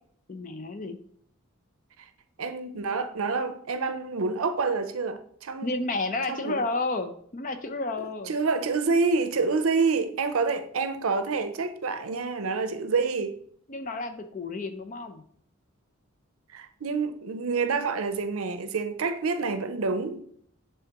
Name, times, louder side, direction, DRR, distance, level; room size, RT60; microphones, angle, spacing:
voice 1, 0.3-1.0 5.6-8.3 13.7-15.2, left 2 dB, 40° left, 0.6 m, -31 dB
voice 2, 2.4-5.9 6.3-6.6 8.0-13.4 16.5-20.2, right 4 dB, 75° right, 0.6 m, -28 dB
10.0 x 3.4 x 2.9 m
head